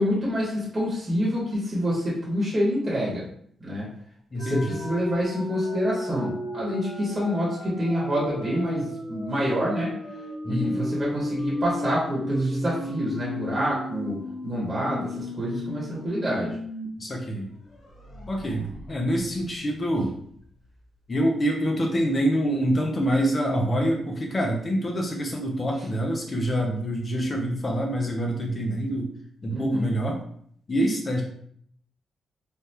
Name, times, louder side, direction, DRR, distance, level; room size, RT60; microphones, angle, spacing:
voice 1, 0.0-3.2 3.6-3.9 4.3-9.9 10.5-16.6 29.5-29.9, equal, 20° right, -6 dB, 1.1 m, -27 dB
voice 2, 4.3-4.8 10.4-10.8 17.0-17.5 18.3-20.1 21.1-29.1 29.4-30.2 30.7-31.2, equal, 30° left, 1 dB, 0.5 m, -26 dB
sound 1, 4.4-16.9 17.2-17.3 17.7-20.4, left 1 dB, 80° left, 0.8 m, -34 dB
3.3 x 2.2 x 2.7 m, 0.63 s
cardioid pair, 130°, 0 cm